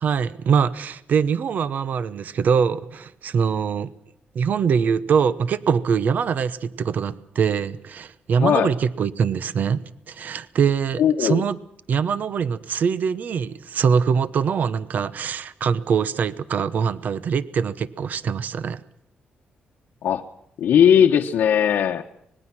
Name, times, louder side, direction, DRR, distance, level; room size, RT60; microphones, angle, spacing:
voice 1, 0.0-3.9 4.3-11.6 11.9-18.8, right 6 dB, 55° right, 15 dB, 1.0 m, -23 dB
voice 2, 8.4-8.7 11.0-11.4 20.0-20.2 20.6-22.0, left 9 dB, 75° left, 2 dB, 1.1 m, -18 dB
25.5 x 20.5 x 6.1 m, 0.76 s
cardioid pair, 140°, 3 cm